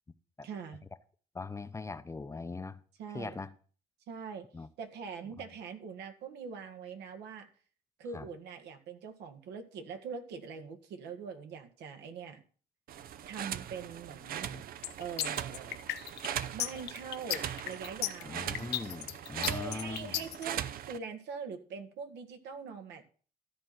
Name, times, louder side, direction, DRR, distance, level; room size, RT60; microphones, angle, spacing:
voice 1, 0.4-0.8 3.0-3.4 4.1-4.5 4.8-7.5 8.0-12.4 13.3-14.5 15.0-15.8 16.5-18.5 19.3-23.1, right 5 dB, 80° right, 1.9 m, -43 dB
voice 2, 1.3-2.8 3.1-3.5 4.5-4.7 8.1-8.3 14.5-14.6 18.2-20.1, left 4 dB, 15° left, 0.8 m, -41 dB
sound 1, 12.9-21.0, right 10 dB, 60° right, 0.7 m, -40 dB
sound 2, 14.8-20.4, left 13 dB, 85° left, 0.9 m, -35 dB
13.0 x 4.4 x 8.0 m
cardioid pair, 110°, 17 cm